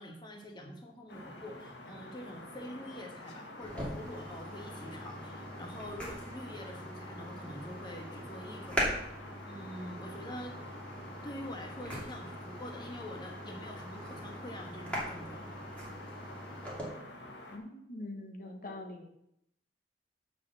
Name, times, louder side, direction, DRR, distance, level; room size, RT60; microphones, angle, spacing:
voice 1, 0.0-8.8 9.2-10.8 11.2-15.4, left 1 dB, 25° left, 2 dB, 1.3 m, -46 dB
sound 1, 1.1-17.6, left 1 dB, 80° left, 1.7 m, -48 dB
sound 2, 3.6-16.8, equal, 5° left, 2.7 m, -41 dB
voice 2, 17.5-19.1, left 1 dB, 50° left, 3 dB, 1.3 m, -43 dB
7.0 x 6.4 x 7.4 m, 0.76 s
head